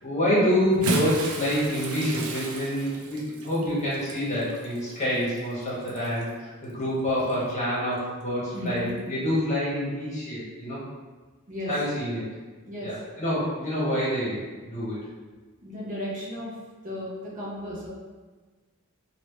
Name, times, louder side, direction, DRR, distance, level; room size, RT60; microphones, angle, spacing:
voice 1, 0.0-10.8 11.7-12.2 12.8-15.0, equal, 35° left, -8 dB, 1.3 m, -27 dB
Bathtub (filling or washing) / Splash splatter, 0.6-6.3 7.2-7.4 8.8-8.9, right 2 dB, 75° right, 0.5 m, -34 dB
voice 2, 8.5-8.9 11.5-11.7 12.7-13.0 15.6-16.5 16.8-17.9, equal, 40° right, -7 dB, 0.9 m, -34 dB
3.0 x 2.9 x 3.1 m, 1.3 s
head